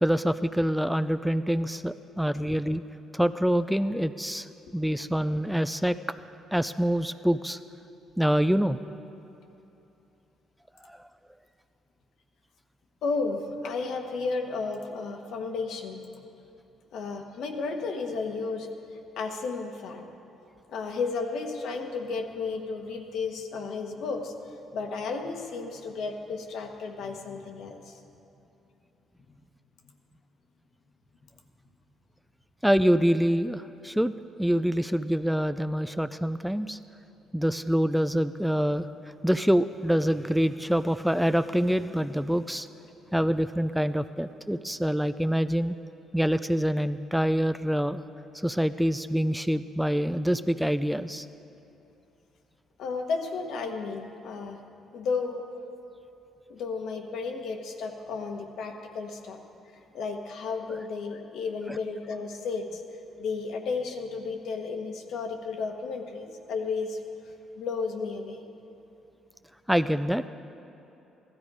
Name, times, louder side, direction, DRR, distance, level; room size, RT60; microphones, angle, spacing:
voice 1, 0.0-2.8 3.1-4.5 4.7-6.0 6.5-7.6 8.2-8.8 10.8-11.0 32.6-34.1 34.4-36.8 37.3-38.9 39.2-42.7 43.1-45.8 46.1-48.0 48.4-51.3 69.7-70.3, equal, ahead, 12 dB, 0.3 m, -25 dB
voice 2, 13.0-16.0 16.9-18.7 19.2-20.1 20.7-24.3 24.7-28.0 52.8-54.6 54.9-55.4 56.5-59.4 59.9-62.8 63.2-67.0 67.5-68.4, left 4 dB, 75° left, 4 dB, 1.3 m, -33 dB
15.5 x 13.0 x 4.9 m, 2.9 s
cardioid pair, 90°, 0 cm